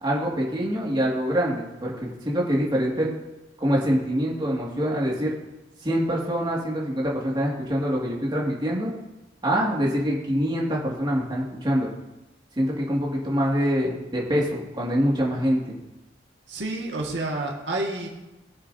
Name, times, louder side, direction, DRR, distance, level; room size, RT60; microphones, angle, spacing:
voice 1, 0.0-3.2 3.6-5.3 5.8-8.9 9.4-11.9 12.6-15.8, equal, 25° right, -3 dB, 2.1 m, -25 dB
voice 2, 16.5-18.1, right 2 dB, 75° right, -1 dB, 1.7 m, -29 dB
20.5 x 7.4 x 2.7 m, 1.0 s
head